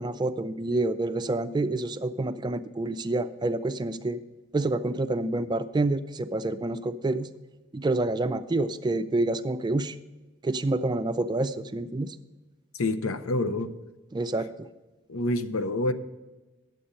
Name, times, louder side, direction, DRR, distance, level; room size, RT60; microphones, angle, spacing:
voice 1, 0.0-4.2 4.5-7.3 7.7-10.0 10.4-12.2 14.1-14.7, right 2 dB, 20° right, 10 dB, 0.4 m, -28 dB
voice 2, 12.8-13.7 15.1-15.9, left 2 dB, 90° left, 10 dB, 0.7 m, -27 dB
10.0 x 7.7 x 5.4 m, 1.2 s
head